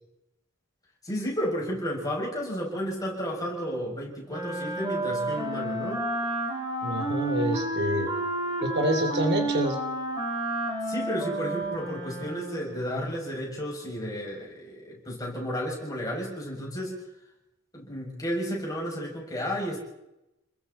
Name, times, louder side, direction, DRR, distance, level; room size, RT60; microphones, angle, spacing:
voice 1, 1.0-6.1 10.8-17.0 17.7-19.8, equal, 20° left, -3 dB, 7.7 m, -32 dB
Wind instrument woodwind instrument, 4.3-12.8, right 1 dB, 25° right, 5.1 m, -31 dB
voice 2, 6.8-8.1 8.6-9.8, right 1 dB, 55° right, 4 dB, 3.3 m, -27 dB
29.5 x 21.5 x 4.5 m, 0.92 s
head